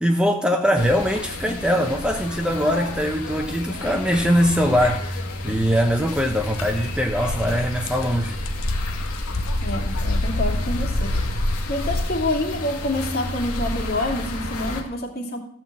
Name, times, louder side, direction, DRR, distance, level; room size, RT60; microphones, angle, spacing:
voice 1, 0.0-8.4, equal, 5° right, 3 dB, 0.8 m, -22 dB
sound 1, 0.8-14.8, left 1 dB, 90° left, 2.3 m, -31 dB
sound 2, 6.5-6.7 7.0-12.0, left 1 dB, 60° left, 1.1 m, -26 dB
voice 2, 9.6-11.2 11.7-15.4, left 1 dB, 45° left, 1 dB, 2.4 m, -27 dB
14.5 x 5.6 x 7.3 m, 0.63 s
head